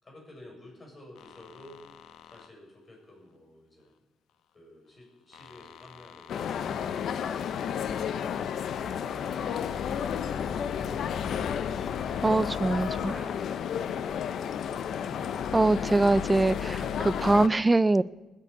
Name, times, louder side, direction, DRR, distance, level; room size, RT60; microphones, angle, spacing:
voice 1, 0.0-1.9 2.2-4.0 4.5-8.6, left 1 dB, 30° left, -1 dB, 6.6 m, -53 dB
sound 1, 1.2-2.5 5.3-8.2 9.0-14.4 14.9-17.4, left 7 dB, 85° left, 1.0 m, -43 dB
sound 2, 6.3-17.5, left 8 dB, 65° left, 0.8 m, -32 dB
voice 2, 12.2-13.3 15.5-18.0, right 2 dB, 20° right, 19 dB, 0.5 m, -23 dB
20.0 x 6.8 x 9.4 m, 1.1 s
cardioid pair, 90°, 0 cm